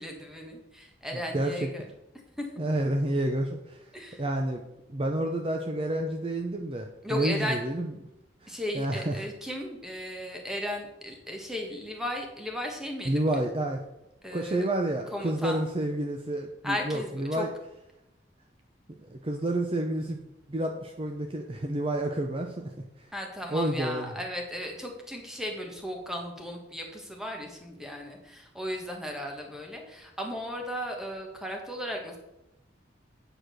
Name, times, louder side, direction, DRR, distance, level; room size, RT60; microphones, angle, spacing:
voice 1, 0.0-1.9 2.4-2.5 3.9-4.2 7.0-7.6 8.5-13.4 14.2-14.7 15.1-15.6 16.6-17.5 23.1-32.2, equal, 5° right, 2 dB, 1.4 m, -36 dB
voice 2, 1.3-1.7 2.6-3.8 4.2-4.6 4.9-7.9 8.4-9.1 13.1-13.8 14.3-17.5 19.0-20.2 20.5-22.7 23.5-24.1, right 1 dB, 30° right, 3 dB, 0.7 m, -29 dB
8.8 x 5.0 x 6.3 m, 0.89 s
head